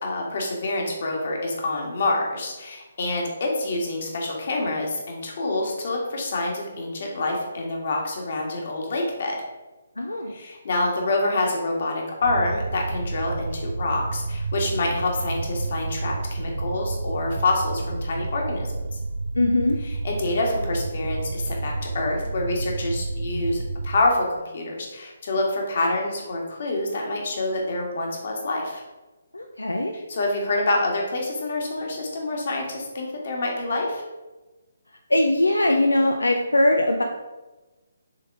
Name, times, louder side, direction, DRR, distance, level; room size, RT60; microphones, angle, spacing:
voice 1, 0.0-9.4 10.3-18.9 19.8-24.3 24.5-28.8 30.1-34.0, left 2 dB, 50° left, 0 dB, 1.7 m, -27 dB
voice 2, 10.0-10.3 19.4-19.8 29.3-29.9 35.1-37.0, left 1 dB, 85° left, 3 dB, 0.6 m, -21 dB
sound 1, 12.2-24.0, right 3 dB, 70° right, 0.5 m, -30 dB
6.7 x 3.5 x 4.8 m, 1.1 s
figure-of-eight pair, 140°, 0 cm